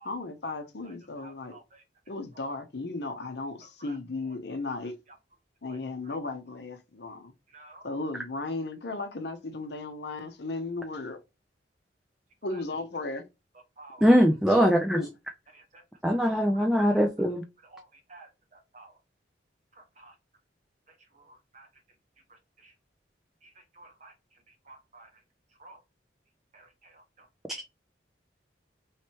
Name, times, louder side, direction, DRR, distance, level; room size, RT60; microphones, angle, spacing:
voice 1, 0.0-1.6 2.1-4.9 5.6-7.3 7.8-11.2 12.4-13.2 14.5-15.1, left 3 dB, 60° left, 0.7 m, -35 dB
voice 2, 1.2-1.6 3.8-3.9 7.5-7.8 13.8-14.0 15.5-15.6 16.2-16.6 16.9-17.1 17.7-17.8 18.1-18.3 18.7-18.9 20.0-20.1 21.5-21.7 23.8-24.1 24.7-25.1 25.6-25.8 26.5-26.7, right 2 dB, 40° right, 1.0 m, -50 dB
voice 3, 14.0-15.0 16.0-17.4 27.5-27.6, equal, ahead, 0.4 m, -22 dB
3.2 x 3.2 x 2.8 m
head